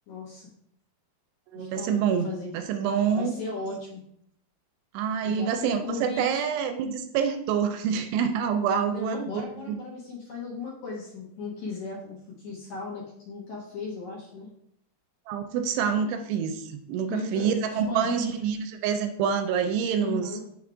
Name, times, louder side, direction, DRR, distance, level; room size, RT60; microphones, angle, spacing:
voice 1, 0.1-0.5 1.5-2.5 3.1-4.0 5.2-6.4 8.8-14.5 17.1-18.3 20.0-20.4, left 3 dB, 70° left, -5 dB, 1.8 m, -36 dB
voice 2, 1.5-2.3 2.5-3.3 4.9-9.8 15.3-20.3, right 7 dB, 85° right, 7 dB, 2.6 m, -27 dB
6.3 x 3.5 x 4.9 m, 0.72 s
omnidirectional pair, 4.9 m